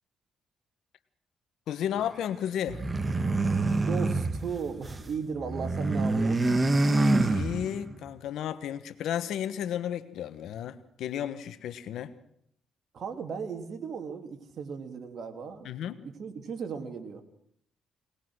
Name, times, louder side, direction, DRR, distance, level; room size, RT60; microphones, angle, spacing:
voice 1, 1.7-2.8 7.2-12.1 15.6-16.0, left 10 dB, 80° left, 12 dB, 1.3 m, -33 dB
sound 1, 2.7-5.1 5.4-7.9, right 2 dB, 25° right, 1.7 m, -26 dB
voice 2, 3.8-6.5 12.9-15.7 16.0-17.2, right 6 dB, 55° right, 5 dB, 3.1 m, -36 dB
22.0 x 20.0 x 6.3 m, 0.70 s
cardioid pair, 90°, 0 cm